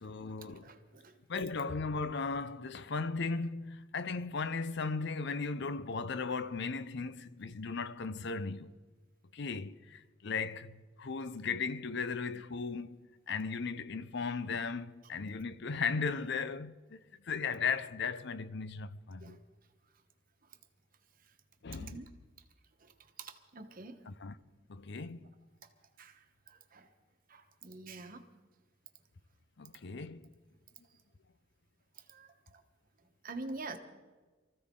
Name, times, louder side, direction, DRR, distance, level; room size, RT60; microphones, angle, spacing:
voice 1, 0.0-0.7 1.3-8.7 9.3-13.0 13.3-17.0 17.2-19.4 21.6-22.0 24.1-24.3 24.7-25.3 29.6-30.3, left 4 dB, 60° left, 0.6 m, -36 dB
voice 2, 0.6-1.1 19.2-19.4 21.2-21.3 21.7-22.1 22.8-24.0 25.6-25.7 26.0-26.9 27.3-28.3 31.9-32.6 33.2-33.8, right 3 dB, 45° right, 1.2 m, -47 dB
24.0 x 14.5 x 3.8 m
head